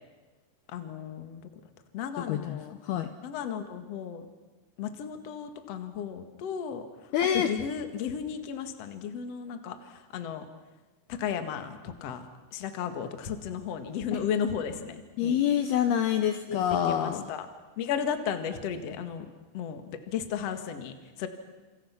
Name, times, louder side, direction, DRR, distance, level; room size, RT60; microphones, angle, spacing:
voice 1, 0.7-1.5 1.9-2.8 3.2-4.3 4.8-6.8 7.3-10.5 11.1-12.2 12.5-15.4 16.5-16.6 16.9-17.5 17.8-19.3 19.5-21.3, left 7 dB, 50° left, 7 dB, 2.0 m, -34 dB
voice 2, 2.3-3.1 7.1-7.5 14.1-14.2 15.2-17.3, left 9 dB, 75° left, 8 dB, 2.5 m, -27 dB
29.5 x 27.5 x 6.0 m, 1.2 s
omnidirectional pair, 5.3 m